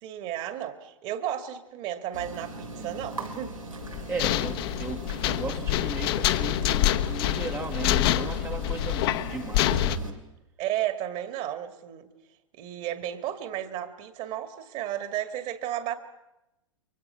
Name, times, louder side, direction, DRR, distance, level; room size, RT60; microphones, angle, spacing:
voice 1, 0.0-3.6 10.6-12.1 12.5-16.0, right 11 dB, 40° right, 9 dB, 2.2 m, -33 dB
sound 1, 2.1-10.1, equal, 90° right, 3.1 m, -38 dB
sound 2, 3.8-10.0, left 13 dB, 50° left, 1.1 m, -26 dB
voice 2, 4.1-10.2, right 4 dB, 15° right, 4 dB, 1.2 m, -37 dB
29.5 x 23.5 x 5.9 m, 0.94 s
figure-of-eight pair, 100°, 17 cm